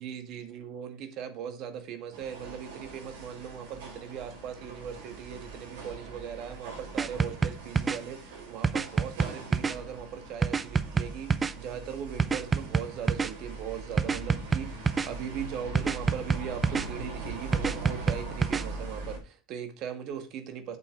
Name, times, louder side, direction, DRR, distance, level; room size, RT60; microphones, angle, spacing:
voice 1, 0.0-20.8, right 8 dB, 55° right, 2.1 m, -39 dB
sound 1, 2.1-19.2, right 3 dB, 85° right, 5.3 m, -42 dB
sound 2, 7.0-8.0 8.6-9.7 10.4-11.5 12.2-13.3 14.0-15.1 15.7-16.9 17.5-18.6, right 5 dB, 20° right, 0.6 m, -26 dB
8.1 x 6.8 x 4.7 m
supercardioid pair, 115°, 0 cm